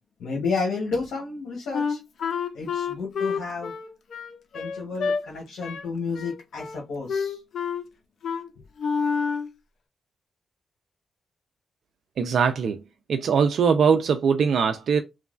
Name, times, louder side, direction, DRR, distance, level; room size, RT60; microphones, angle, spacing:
voice 1, 0.2-2.0 2.5-3.7 4.5-7.4, left 4 dB, 90° left, 0.8 m, -31 dB
Wind instrument woodwind instrument, 1.7-5.2 5.6-5.9 6.1-6.8 7.1-7.9 8.2-8.5 8.8-9.5, left 5 dB, 70° left, 0.5 m, -28 dB
voice 2, 12.2-12.8 13.1-15.0, right 6 dB, 75° right, 0.3 m, -21 dB
3.0 x 2.2 x 2.4 m
cardioid pair, 70°, 0 cm